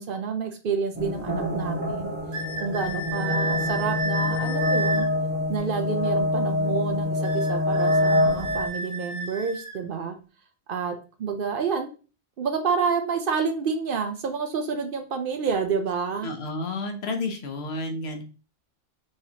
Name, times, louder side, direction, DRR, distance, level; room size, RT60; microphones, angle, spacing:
voice 1, 0.0-2.1 2.6-5.1 5.5-10.2 10.7-11.9 12.4-16.3, right 5 dB, 60° right, 6 dB, 0.7 m, -29 dB
sound 1, 0.9-8.7, left 2 dB, 10° right, 0.9 m, -25 dB
sound 2, 2.3-5.1 7.2-9.8, right 2 dB, 75° right, 1.5 m, -32 dB
voice 2, 16.2-18.2, left 2 dB, 70° left, 4 dB, 1.0 m, -31 dB
4.7 x 3.0 x 2.8 m, 0.35 s
omnidirectional pair, 1.1 m